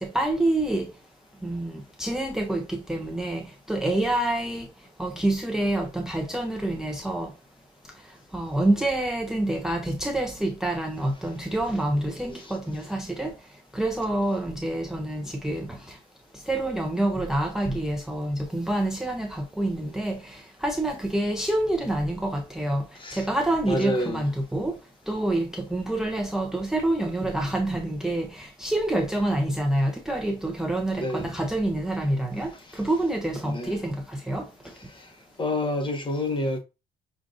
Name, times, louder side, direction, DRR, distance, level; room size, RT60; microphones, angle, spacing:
voice 1, 0.0-0.9 1.4-4.7 5.0-7.3 8.3-13.3 13.7-16.0 16.5-22.9 23.1-24.8 25.1-34.5, right 1 dB, 5° right, 0.5 m, -27 dB
voice 2, 23.0-23.3 23.7-24.2 31.0-31.3 32.5-32.8 33.4-33.8 34.7-35.1 35.4-36.6, left 1 dB, 30° left, 1.1 m, -29 dB
5.9 x 2.5 x 2.4 m
cardioid pair, 110°, 17 cm